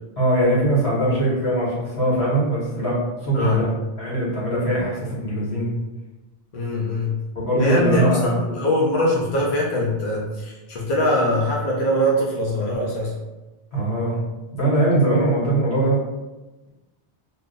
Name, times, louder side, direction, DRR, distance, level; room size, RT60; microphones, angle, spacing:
voice 1, 0.2-3.0 3.2-3.7 4.0-5.7 7.3-8.4 13.7-14.2 14.5-16.0, right 1 dB, 70° left, -6 dB, 1.4 m, -21 dB
voice 2, 6.5-7.2 7.6-8.1 8.4-13.1, left 1 dB, 55° left, -4 dB, 0.7 m, -22 dB
2.5 x 2.3 x 3.8 m, 1.1 s
omnidirectional pair, 1.2 m